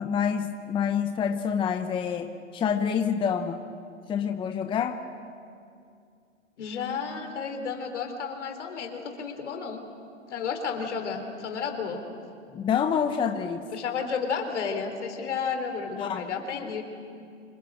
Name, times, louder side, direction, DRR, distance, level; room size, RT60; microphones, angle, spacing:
voice 1, 0.0-3.6 4.1-5.0 12.5-13.7 16.0-16.2 16.6-16.7, left 7 dB, 15° left, 7 dB, 0.8 m, -27 dB
voice 2, 6.6-9.8 10.3-12.0 13.7-16.8, left 6 dB, 65° left, 5 dB, 4.1 m, -32 dB
26.0 x 23.0 x 7.9 m, 2.4 s
hypercardioid pair, 120°, 37 cm